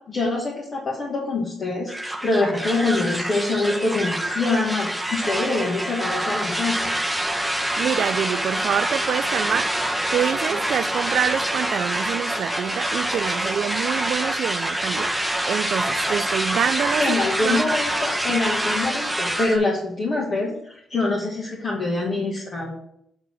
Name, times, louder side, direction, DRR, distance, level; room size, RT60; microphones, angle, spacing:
voice 1, 0.1-6.8 17.0-22.7, left 2 dB, 40° left, 1.8 m, -25 dB
sound 1, 1.9-19.6, right 1 dB, ahead, 1.0 m, -26 dB
voice 2, 7.8-9.7 10.1-17.6, right 8 dB, 65° right, 0.3 m, -26 dB
8.0 x 3.8 x 6.3 m
cardioid pair, 90°, 0 cm